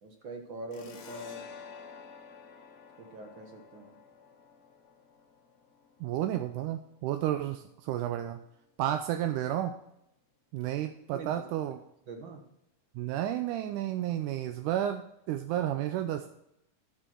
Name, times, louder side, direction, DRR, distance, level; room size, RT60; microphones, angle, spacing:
voice 1, 0.0-1.5 3.0-4.0 11.1-11.3 12.1-12.5, right 3 dB, 50° right, 3 dB, 1.7 m, -43 dB
sound 1, 0.7-7.9, left 5 dB, 55° left, 1.8 m, -51 dB
voice 2, 6.0-8.4 8.8-9.8 10.5-11.8 13.0-16.3, right 12 dB, 85° right, 8 dB, 2.1 m, -32 dB
12.0 x 7.1 x 4.5 m, 0.79 s
omnidirectional pair, 3.6 m